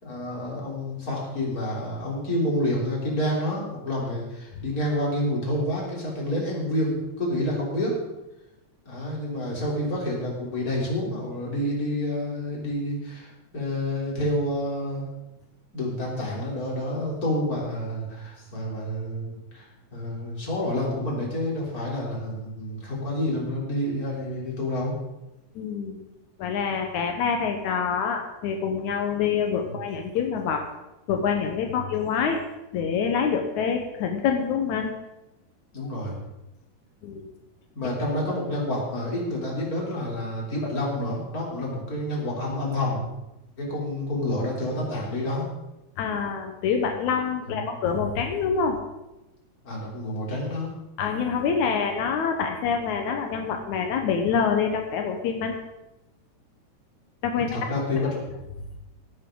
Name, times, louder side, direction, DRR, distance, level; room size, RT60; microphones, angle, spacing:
voice 1, 0.0-8.0 8.9-15.1 15.7-24.9 29.6-29.8 31.7-31.9 35.7-36.2 37.8-43.0 43.6-45.5 47.4-47.8 49.6-50.7 57.4-58.2, left 1 dB, 30° left, -3 dB, 3.9 m, -29 dB
voice 2, 25.6-26.0 26.4-30.7 31.1-32.4 32.7-34.9 37.0-37.3 46.0-48.8 51.0-55.5 57.2-57.7, left 6 dB, 80° left, 4 dB, 2.5 m, -26 dB
17.5 x 9.8 x 3.9 m, 0.94 s
omnidirectional pair, 3.3 m